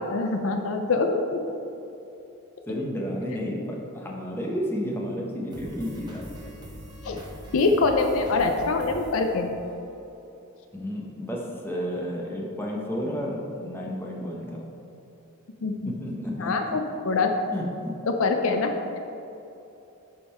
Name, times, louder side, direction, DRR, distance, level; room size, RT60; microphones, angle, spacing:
voice 1, 0.1-1.4 7.0-7.2 7.5-9.5 15.6-15.9 16.4-17.3 18.2-19.0, left 3 dB, 60° left, 5 dB, 0.5 m, -24 dB
voice 2, 2.7-6.2 10.7-14.7 16.0-16.5 17.5-17.9, equal, 10° left, -2 dB, 0.8 m, -31 dB
sound 1, 5.5-10.2, equal, 20° right, 0.9 m, -43 dB
9.9 x 3.7 x 4.3 m, 2.9 s
head